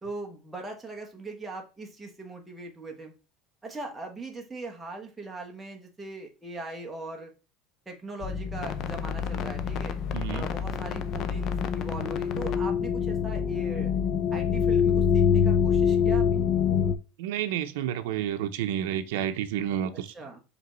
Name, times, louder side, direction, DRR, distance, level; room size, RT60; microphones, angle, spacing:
voice 1, 0.0-3.1 3.6-7.3 7.9-10.0 10.3-13.9 14.3-16.4 20.1-20.4, right 2 dB, 10° right, 1.0 m, -40 dB
sound 1, 8.2-17.0, left 7 dB, 35° left, 0.5 m, -26 dB
voice 2, 10.1-10.5 17.2-20.1, right 10 dB, 85° right, 0.6 m, -30 dB
5.1 x 3.4 x 3.0 m
cardioid pair, 165°, 0 cm